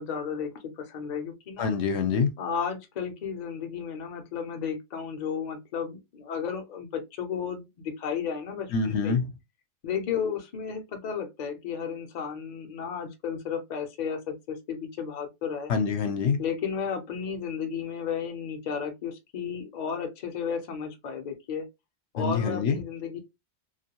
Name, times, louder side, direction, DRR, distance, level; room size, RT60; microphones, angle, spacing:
voice 1, 0.0-1.7 2.4-9.2 9.8-15.7 16.4-21.7 22.1-23.2, left 7 dB, 50° left, 0.6 m, -33 dB
voice 2, 1.6-2.3 8.7-9.3 15.7-16.4 22.2-22.8, left 5 dB, 75° left, 0.9 m, -25 dB
2.3 x 2.2 x 2.8 m
omnidirectional pair, 1.2 m